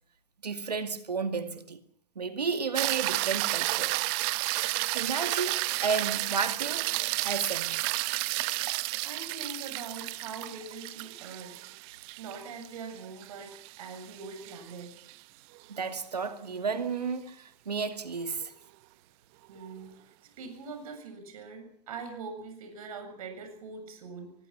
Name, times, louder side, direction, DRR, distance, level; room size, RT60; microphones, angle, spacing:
voice 1, 0.4-1.8 2.2-4.0 4.3-4.6 4.9-7.7 15.7-18.5, right 5 dB, 90° right, 2.2 m, -32 dB
sound 1, 2.7-15.1 19.6-19.7, right 24 dB, 40° right, 0.8 m, -32 dB
voice 2, 9.0-11.5 12.2-14.9 19.5-24.3, right 4 dB, 65° right, 7.5 m, -43 dB
23.5 x 20.5 x 6.1 m
hypercardioid pair, 115°, 20 cm